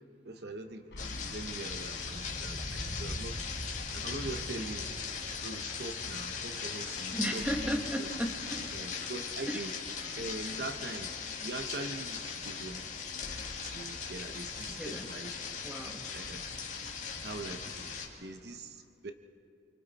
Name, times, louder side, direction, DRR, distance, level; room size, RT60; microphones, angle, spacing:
voice 1, 0.0-3.4 3.9-5.0 5.4-8.1 8.7-9.7 10.2-11.1 11.4-12.8 13.6-15.6 16.1-16.4 17.2-19.1, right 2 dB, 65° right, 7 dB, 0.9 m, -42 dB
sound 1, 0.9-2.9 3.3-3.4 7.4-9.4 13.2-15.2, left 1 dB, 70° left, 1.1 m, -49 dB
sound 2, 1.0-18.1, left 5 dB, 40° left, 2.1 m, -39 dB
voice 2, 7.1-8.8 9.5-9.7 10.0-10.4 14.6-15.1 15.6-16.0, equal, 10° right, 2 dB, 1.4 m, -36 dB
26.0 x 25.0 x 4.2 m, 2.4 s
head